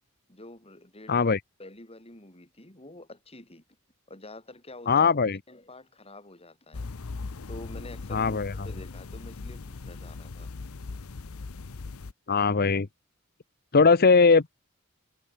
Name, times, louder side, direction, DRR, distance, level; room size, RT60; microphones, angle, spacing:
voice 1, 0.3-1.3 1.6-3.6 4.1-5.1 5.5-6.9 7.5-8.4 8.6-10.5, left 2 dB, 25° left, 6.7 m, -47 dB
voice 2, 1.1-1.4 4.9-5.4 8.1-8.5 12.3-12.9 13.7-14.5, left 4 dB, 45° left, 0.8 m, -20 dB
sound 1, 6.7-12.1, left 3 dB, 75° left, 0.8 m, -39 dB
head